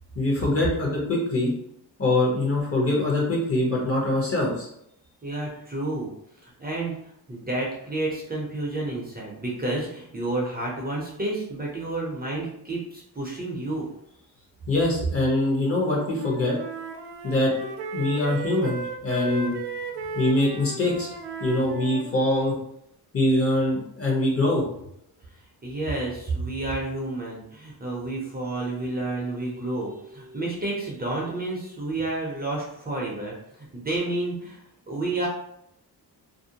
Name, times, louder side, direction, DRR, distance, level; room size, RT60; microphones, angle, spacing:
voice 1, 0.2-1.5 2.0-4.7 14.7-16.6 17.2-17.5 17.9-19.5 20.1-21.1 21.4-22.5 23.1-24.6, left 1 dB, 35° left, -3 dB, 0.9 m, -23 dB
voice 2, 5.2-6.1 6.4-7.0 7.3-13.9 25.3-35.3, right 2 dB, 25° right, -3 dB, 0.6 m, -30 dB
Wind instrument woodwind instrument, 15.8-22.5, right 5 dB, 75° right, 0.5 m, -36 dB
2.6 x 2.0 x 2.7 m, 0.75 s
cardioid pair, 105°, 41 cm